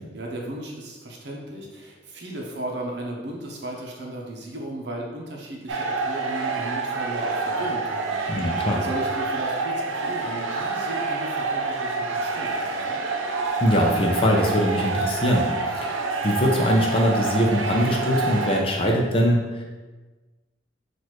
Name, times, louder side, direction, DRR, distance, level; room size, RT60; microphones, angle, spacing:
voice 1, 0.1-13.0, right 1 dB, 60° right, -1 dB, 0.8 m, -35 dB
sound 1, 5.7-18.6, right 3 dB, 90° right, 0.5 m, -27 dB
voice 2, 8.3-8.8 13.6-15.9 16.2-19.6, equal, 30° left, -1 dB, 0.6 m, -22 dB
6.0 x 2.5 x 3.0 m, 1.3 s
head